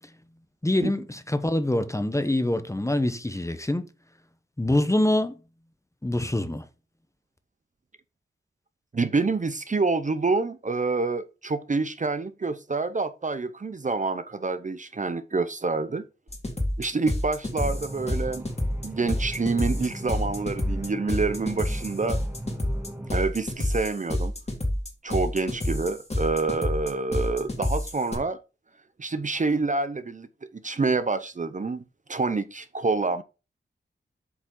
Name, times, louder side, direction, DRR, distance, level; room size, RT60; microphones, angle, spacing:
voice 1, 0.6-3.8 4.6-5.4 6.0-6.7, left 1 dB, 15° left, 0.8 m, -25 dB
voice 2, 8.9-16.0 16.8-18.4 18.8-22.2 23.1-24.3 25.0-28.4 29.0-30.3 30.6-31.8 32.1-33.2, right 3 dB, 35° right, 0.6 m, -27 dB
sound 1, 16.3-28.1, left 1 dB, 30° left, 2.1 m, -29 dB
sound 2, 17.6-23.1, right 1 dB, 10° right, 1.6 m, -39 dB
8.1 x 5.1 x 3.7 m
wide cardioid pair, 95°, 21 cm